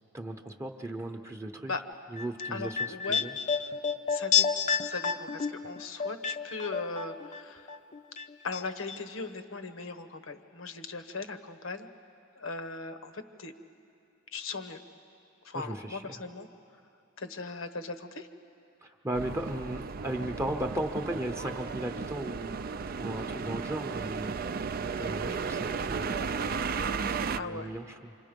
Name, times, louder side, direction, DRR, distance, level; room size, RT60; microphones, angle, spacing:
voice 1, 0.1-1.7 2.1-3.3 15.5-16.1 18.8-24.6 25.0-28.0, right 1 dB, 15° right, 4 dB, 0.8 m, -37 dB
sound 1, 2.2-7.4 7.7-8.6 8.9-9.0, left 7 dB, 35° left, 0.6 m, -30 dB
voice 2, 2.5-3.2 4.1-7.8 8.4-11.9 12.4-13.5 14.3-14.8 15.4-16.5 17.2-18.3 27.4-27.7, left 3 dB, 75° left, 7 dB, 1.1 m, -38 dB
sound 2, 19.1-27.4, right 5 dB, 45° right, 0.4 m, -34 dB
28.0 x 25.5 x 5.3 m, 2.7 s
head